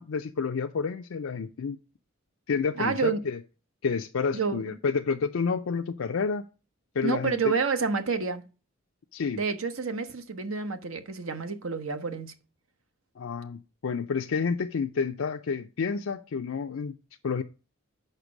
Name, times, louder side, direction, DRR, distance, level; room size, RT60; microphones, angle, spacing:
voice 1, 0.0-1.8 2.5-3.4 3.8-6.4 6.9-7.5 9.1-9.4 13.2-16.9 17.2-17.4, left 5 dB, 80° left, 0.5 m, -29 dB
voice 2, 2.8-3.2 4.3-4.6 7.0-8.4 9.4-12.3, right 5 dB, 90° right, 0.9 m, -29 dB
6.6 x 5.1 x 6.0 m
head